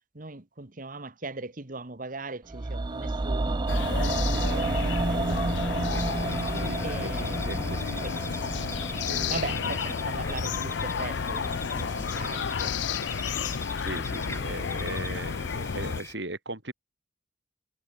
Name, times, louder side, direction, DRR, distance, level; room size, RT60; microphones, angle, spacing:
voice 1, 0.1-3.6 4.3-5.8 6.8-7.7 8.0-8.2 9.3-13.3, right 3 dB, 45° right, 1.7 m, -39 dB
sound 1, 2.5-12.6 12.9-13.0, right 2 dB, 25° right, 0.5 m, -31 dB
sound 2, 3.7-16.0, left 6 dB, 70° left, 0.5 m, -32 dB
sound 3, 5.9-16.1, left 3 dB, 15° left, 7.6 m, -42 dB
voice 2, 6.5-7.1 7.4-8.1 9.1-9.6 13.8-16.7, right 2 dB, 70° right, 5.6 m, -38 dB
head